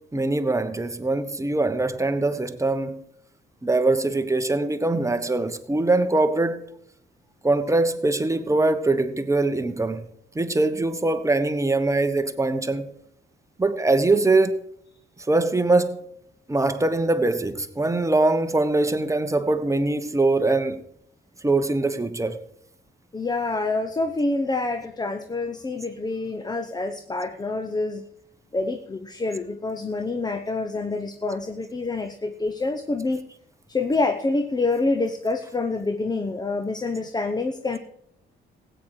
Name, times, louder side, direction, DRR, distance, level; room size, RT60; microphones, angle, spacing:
voice 1, 0.0-3.0 3.6-6.6 7.4-10.1 10.3-12.9 13.6-14.6 15.3-16.0 16.5-20.8 21.4-22.4, right 2 dB, 15° right, 1.1 m, -22 dB
voice 2, 23.1-28.0 28.5-33.2 33.7-37.8, left 3 dB, 20° left, 0.8 m, -27 dB
16.0 x 9.0 x 4.9 m
cardioid pair, 90°, 20 cm